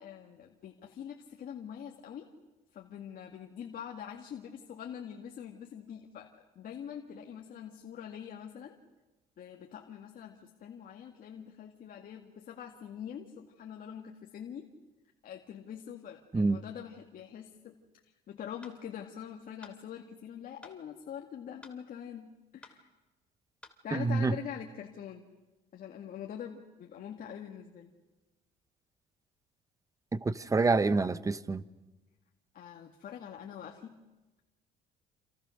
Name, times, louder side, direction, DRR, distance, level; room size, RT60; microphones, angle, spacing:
voice 1, 0.0-2.3 2.7-8.8 9.4-14.7 15.2-17.8 18.3-22.9 23.8-25.2 25.7-27.9 32.5-34.0, left 9 dB, 55° left, 2.1 m, -44 dB
sound 1, 18.6-18.8 19.6-19.8 20.6-20.8 21.6-21.8 22.6-22.8 23.6-23.8, left 2 dB, 5° left, 3.3 m, -52 dB
voice 2, 23.9-24.4 30.1-31.6, right 3 dB, 20° right, 1.1 m, -27 dB
28.5 x 28.5 x 6.6 m
cardioid pair, 110°, 17 cm